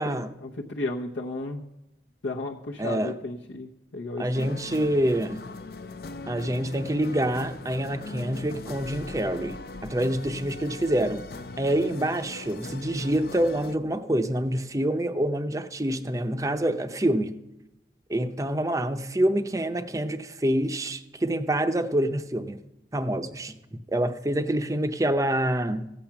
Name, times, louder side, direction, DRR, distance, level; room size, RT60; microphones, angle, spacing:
voice 1, 0.0-1.7 2.2-4.6, left 2 dB, 85° left, 0.9 m, -34 dB
voice 2, 2.8-3.2 4.2-5.4 6.3-11.3 11.6-17.4 18.1-22.6 22.9-25.9, right 1 dB, 20° right, 0.6 m, -26 dB
sound 1, 4.3-13.8, left 3 dB, 55° left, 0.5 m, -40 dB
14.5 x 8.8 x 5.9 m
head